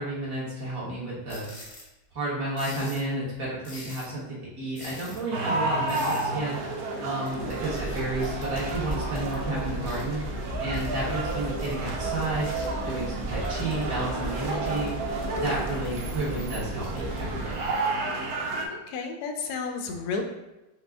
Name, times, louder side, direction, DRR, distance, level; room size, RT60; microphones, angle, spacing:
voice 1, 0.0-1.4 2.1-10.2 10.6-12.5 12.8-17.7, right 2 dB, 50° right, -7 dB, 1.6 m, -32 dB
sound 1, 1.3-1.9 2.6-3.1 3.6-4.2 4.8-5.2 5.9-6.3 7.3-9.3 9.9-10.1 10.7-10.9 11.6-11.7 12.4-12.7 13.4-13.9 14.4-15.0 15.7-16.1 16.8-17.2, left 2 dB, 45° left, 0.8 m, -45 dB
sound 2, 5.3-18.7, right 2 dB, 70° right, 0.9 m, -32 dB
sound 3, 7.3-17.8, right 1 dB, 10° right, 1.0 m, -36 dB
voice 2, 18.7-20.2, left 4 dB, 75° left, 4 dB, 0.9 m, -32 dB
4.9 x 2.1 x 3.4 m, 1.0 s
omnidirectional pair, 2.2 m